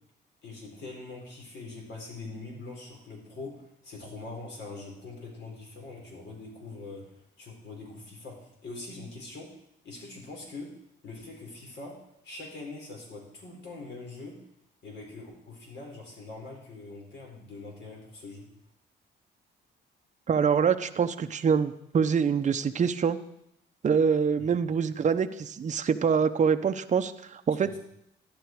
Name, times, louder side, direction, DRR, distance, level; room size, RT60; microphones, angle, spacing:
voice 1, 0.4-7.0 7.4-9.5 9.8-10.7 11.0-11.9 12.2-14.4 14.8-18.4 24.4-24.5 27.6-27.8, left 3 dB, 60° left, 0 dB, 4.6 m, -43 dB
voice 2, 20.3-23.2 23.8-27.7, right 6 dB, 35° right, 9 dB, 0.7 m, -25 dB
13.0 x 10.5 x 4.7 m, 0.78 s
cardioid pair, 90°, 20 cm